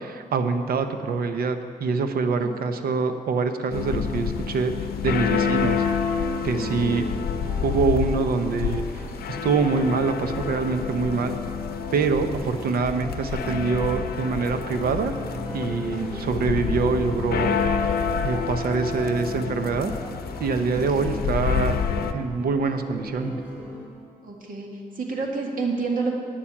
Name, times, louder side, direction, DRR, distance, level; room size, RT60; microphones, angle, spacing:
voice 1, 0.0-4.7 5.0-5.9 6.4-7.0 7.6-11.3 11.9-15.1 15.5-17.6 18.2-19.9 20.4-21.8 22.1-23.4, right 4 dB, 80° right, 8 dB, 0.8 m, -25 dB
sound 1, 3.7-22.1, left 6 dB, 90° left, 0.6 m, -28 dB
sound 2, 6.2-23.9, equal, 10° right, 3.4 m, -40 dB
voice 2, 6.6-7.0 15.9-16.3 20.7-21.2 24.2-24.7 25.0-26.1, right 4 dB, 65° right, 0 dB, 1.9 m, -30 dB
8.9 x 7.1 x 8.5 m, 2.1 s
cardioid pair, 105°, 15 cm